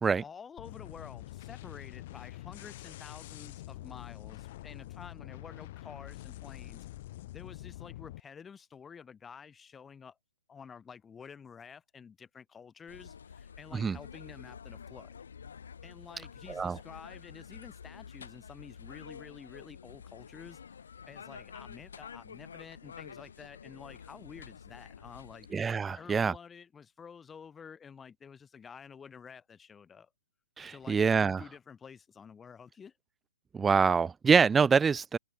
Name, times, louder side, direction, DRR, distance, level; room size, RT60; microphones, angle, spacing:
voice 1, 0.2-6.9 7.3-10.2 10.5-15.1 15.8-20.6 21.1-25.5 25.9-30.1 30.7-32.9, left 6 dB, 15° left, 6.4 m, -50 dB
sound 1, 0.6-8.2, left 16 dB, 45° left, 2.2 m, -46 dB
sound 2, 12.9-25.5, left 7 dB, 70° left, 7.4 m, -49 dB
voice 2, 25.5-26.3 30.6-31.4 33.5-35.2, right 5 dB, 10° right, 0.5 m, -25 dB
hypercardioid pair, 130°, 0 cm